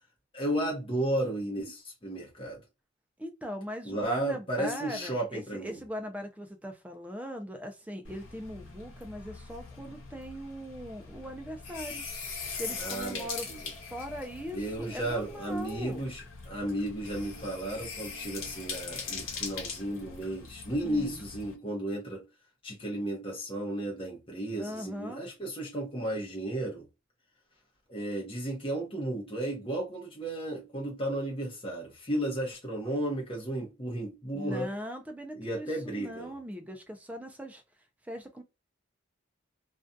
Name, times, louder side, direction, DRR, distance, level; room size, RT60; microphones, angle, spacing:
voice 1, 0.3-2.6 3.8-5.8 12.8-13.7 14.5-22.2 22.6-26.9 27.9-34.7 35.3-36.3, right 1 dB, 25° left, 0.8 m, -34 dB
voice 2, 3.2-12.0 12.6-13.5 13.9-16.0 20.8-21.2 24.5-25.3 34.3-37.6 38.1-38.4, equal, 5° right, 0.4 m, -40 dB
sound 1, 8.0-21.5, left 5 dB, 85° left, 0.9 m, -42 dB
2.6 x 2.3 x 2.3 m
head